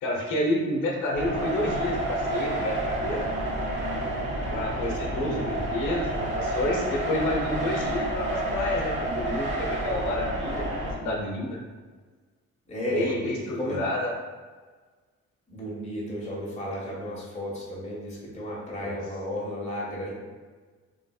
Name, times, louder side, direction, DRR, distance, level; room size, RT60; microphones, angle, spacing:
voice 1, 0.0-3.3 4.5-10.6 11.0-11.6 12.9-14.1 18.8-19.0, left 1 dB, 80° left, 0 dB, 0.7 m, -29 dB
sound 1, 1.1-10.9, right 1 dB, 40° right, 0.9 m, -29 dB
voice 2, 5.1-5.4 12.7-13.1 13.6-13.8 15.5-20.1, equal, 25° left, -5 dB, 0.9 m, -33 dB
3.1 x 2.6 x 2.3 m, 1.4 s
cardioid pair, 90°, 30 cm